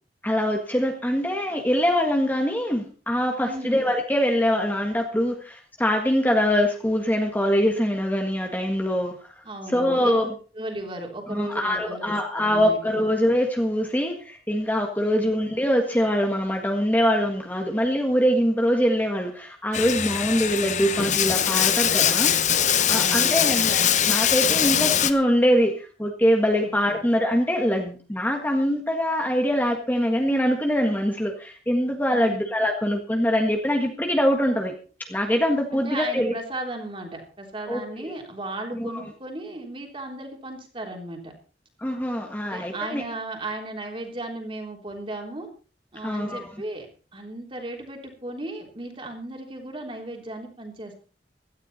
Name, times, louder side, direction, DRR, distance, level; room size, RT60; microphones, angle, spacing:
voice 1, 0.2-10.3 11.3-22.3 22.9-34.7 35.1-36.4 37.7-38.2 38.7-39.0 41.8-43.0 46.0-46.5, equal, 10° left, 3 dB, 1.7 m, -23 dB
voice 2, 3.4-3.8 9.4-10.1 10.5-13.0 15.2-15.3 22.9-23.6 26.6-27.0 32.1-32.4 35.7-41.3 42.5-45.5 45.9-46.9 47.1-50.9, right 2 dB, 30° right, 2 dB, 3.5 m, -35 dB
Bathtub (filling or washing), 19.7-25.1, left 9 dB, 45° left, 0.9 m, -22 dB
16.5 x 13.0 x 4.2 m, 0.37 s
head